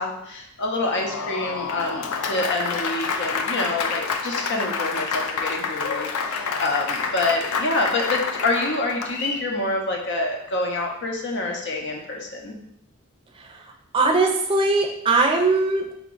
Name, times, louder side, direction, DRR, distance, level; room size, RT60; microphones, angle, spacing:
voice 1, 0.0-12.6, left 2 dB, 55° left, 1 dB, 0.8 m, -27 dB
Applause, 0.7-9.5, left 5 dB, 85° left, 0.5 m, -28 dB
voice 2, 13.3-16.0, right 3 dB, 25° right, 1 dB, 0.5 m, -21 dB
4.7 x 2.3 x 3.8 m, 0.75 s
head